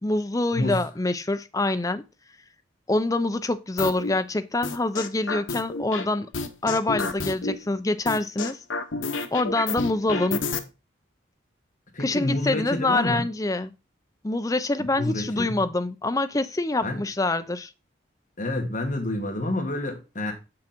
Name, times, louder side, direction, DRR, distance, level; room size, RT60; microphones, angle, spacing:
voice 1, 0.0-2.0 2.9-6.3 6.6-8.6 9.3-10.4 12.0-13.7 14.2-17.7, left 2 dB, 15° left, 0.5 m, -25 dB
sound 1, 3.8-4.1 4.6-6.0 6.3-7.5 8.1-10.6, left 3 dB, 85° left, 1.0 m, -29 dB
voice 2, 11.9-13.2 14.9-15.5 16.8-17.0 18.4-20.3, left 2 dB, 40° left, 2.0 m, -28 dB
7.3 x 6.2 x 4.4 m
head